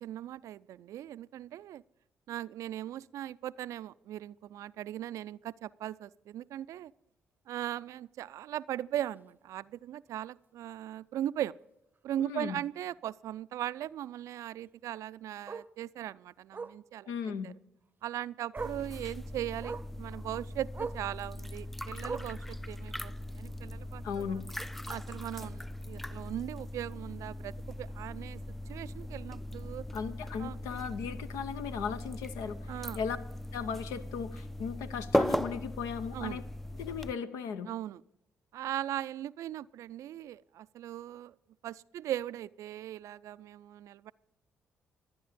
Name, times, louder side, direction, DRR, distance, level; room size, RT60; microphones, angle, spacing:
voice 1, 0.0-1.8 2.3-6.9 7.5-11.5 12.0-17.1 17.4-17.5 18.0-24.4 24.9-28.4 28.7-29.8 30.4-30.6 32.7-33.0 36.1-36.4 37.7-38.0 38.5-41.3 41.6-44.1, right 12 dB, 70° right, 19 dB, 0.3 m, -39 dB
Bark, 9.0-9.2 9.6-9.7 10.1-10.2 10.4-10.5 12.0-12.1 14.6-14.7 15.5-15.7 16.5-16.8 18.0-18.1 18.5-18.9 19.6-19.9 20.7-21.1 22.0-22.5 23.4-23.5, right 4 dB, 35° right, 0.6 m, -40 dB
voice 2, 12.2-12.6 17.1-17.5 24.0-24.4 29.9-33.2 33.5-36.4 36.8-37.7, left 6 dB, 80° left, 10 dB, 0.7 m, -37 dB
sound 1, 18.6-37.1, left 1 dB, 5° left, 0.4 m, -38 dB
12.5 x 9.8 x 5.1 m, 0.89 s
hypercardioid pair, 50°, 6 cm